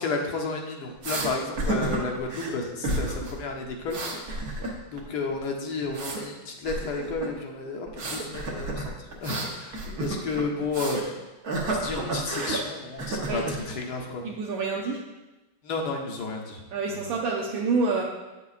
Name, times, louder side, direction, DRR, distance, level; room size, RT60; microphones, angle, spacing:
voice 1, 0.0-4.0 4.3-4.4 4.9-8.9 9.2-11.1 11.6-14.2 15.6-16.6 16.9-17.1, left 3 dB, 65° left, 1 dB, 1.2 m, -32 dB
sound 1, 1.0-1.3 1.6-2.5 2.8-3.3 3.6-5.0 5.3-6.2 6.7-7.3 7.9-11.1 11.4-12.6 13.0-13.6, right 2 dB, 50° right, 1.3 m, -31 dB
voice 2, 14.2-15.0 16.7-18.0, right 4 dB, 75° right, -2 dB, 1.4 m, -27 dB
8.5 x 6.8 x 2.4 m, 1.1 s
omnidirectional pair, 2.3 m